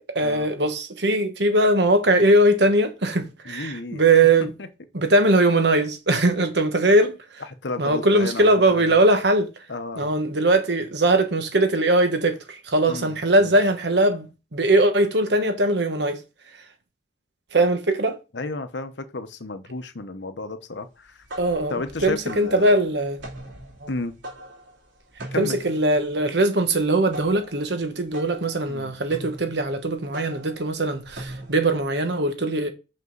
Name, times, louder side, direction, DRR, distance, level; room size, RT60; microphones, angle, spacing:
voice 1, 0.0-4.5 4.9-7.4 7.8-9.5 10.0-16.2 17.5-18.2 21.4-21.7 22.0-23.2 23.8-23.9 25.4-32.7, right 1 dB, 65° right, 1.2 m, -20 dB
voice 2, 3.4-4.1 4.6-4.7 7.6-9.0 9.7-10.1 12.9-13.5 18.3-21.2 21.7-22.7 23.9-24.1 25.3-25.5 28.7-28.9, left 3 dB, 75° left, 0.9 m, -32 dB
sound 1, 21.0-31.8, right 1 dB, 85° right, 2.9 m, -41 dB
6.2 x 5.5 x 3.9 m
head